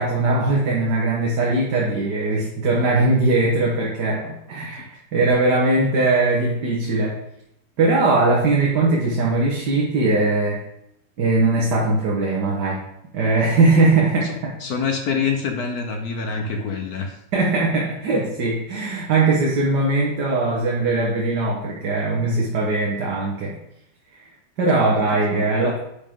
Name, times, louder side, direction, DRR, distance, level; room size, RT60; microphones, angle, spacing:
voice 1, 0.0-7.2 7.8-10.6 11.2-12.8 13.1-14.6 17.3-23.6 24.1-24.2 24.6-25.8, right 2 dB, 60° right, -3 dB, 1.8 m, -20 dB
voice 2, 14.6-17.2 24.7-24.8, left 5 dB, 60° left, 4 dB, 1.2 m, -25 dB
10.5 x 5.1 x 3.7 m, 0.80 s
omnidirectional pair, 2.0 m